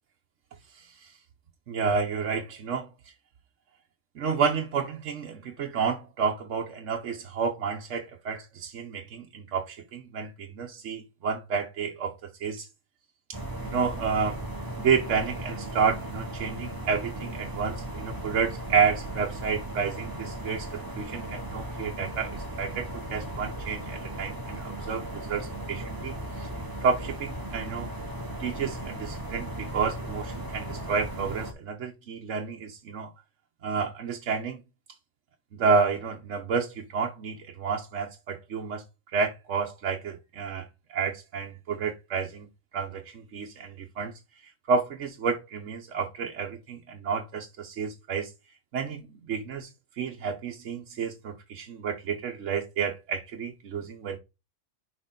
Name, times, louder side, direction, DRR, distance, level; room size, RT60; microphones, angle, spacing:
voice 1, 0.7-1.2 1.7-2.9 4.1-12.7 13.3-14.4 14.8-26.5 26.8-27.9 28.4-33.1 33.6-34.6 35.5-38.8 39.1-42.5 42.7-48.3 48.7-49.7 50.0-54.2, right 5 dB, 75° right, 1.2 m, -30 dB
sound 1, 13.3-31.5, right 1 dB, 20° right, 1.0 m, -37 dB
6.5 x 4.4 x 3.7 m
omnidirectional pair, 1.3 m